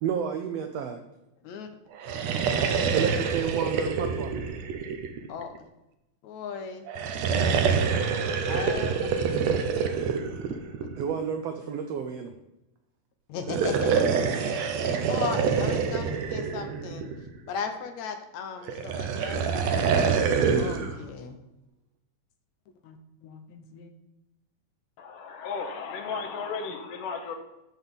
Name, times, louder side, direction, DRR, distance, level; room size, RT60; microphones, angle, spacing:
voice 1, 0.0-1.0 2.9-4.4 7.6-7.9 9.1-9.3 11.0-12.3 15.9-16.0, right 7 dB, 85° right, 7 dB, 1.4 m, -32 dB
sound 1, 2.0-5.6 6.9-11.2 13.4-17.4 18.7-21.0, right 6 dB, 70° right, 1.8 m, -26 dB
voice 2, 6.2-6.8 8.5-8.9 13.3-13.9 14.4-14.8 15.1-17.1 17.5-20.1 20.5-21.4 22.8-23.0 23.2-23.9, left 6 dB, 70° left, 6 dB, 1.9 m, -37 dB
voice 3, 25.0-27.4, left 5 dB, 85° left, 4 dB, 2.7 m, -34 dB
11.5 x 4.0 x 7.0 m, 0.93 s
omnidirectional pair, 3.6 m